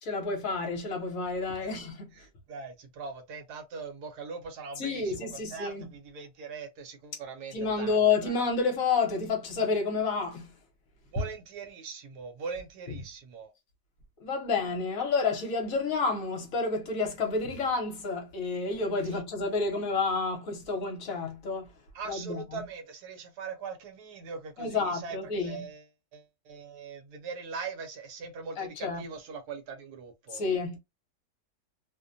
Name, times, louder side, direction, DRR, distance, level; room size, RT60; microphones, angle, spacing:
voice 1, 0.0-2.1 4.8-5.9 7.5-10.5 14.2-21.7 22.1-22.4 24.6-25.7 28.6-29.0 30.3-30.8, left 4 dB, 60° left, 1.1 m, -29 dB
voice 2, 2.1-8.3 11.1-13.5 19.0-19.2 21.9-30.4, right 5 dB, 70° right, 1.2 m, -41 dB
2.8 x 2.1 x 2.5 m
omnidirectional pair, 1.9 m